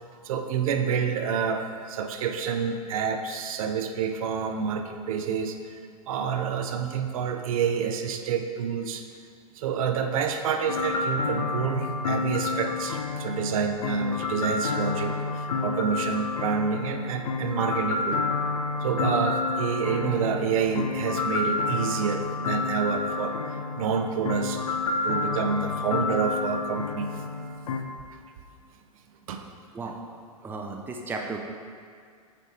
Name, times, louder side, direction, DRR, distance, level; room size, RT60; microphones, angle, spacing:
voice 1, 0.2-5.8 6.1-9.0 9.6-18.2 18.8-24.7 25.0-27.1 29.3-29.4, right 6 dB, 65° right, 5 dB, 0.6 m, -28 dB
sound 1, 10.7-27.8, left 3 dB, 75° left, 0.7 m, -29 dB
voice 2, 30.4-31.4, right 3 dB, 10° right, 1 dB, 0.5 m, -34 dB
8.3 x 3.3 x 4.2 m, 2.2 s
hypercardioid pair, 115°, 19 cm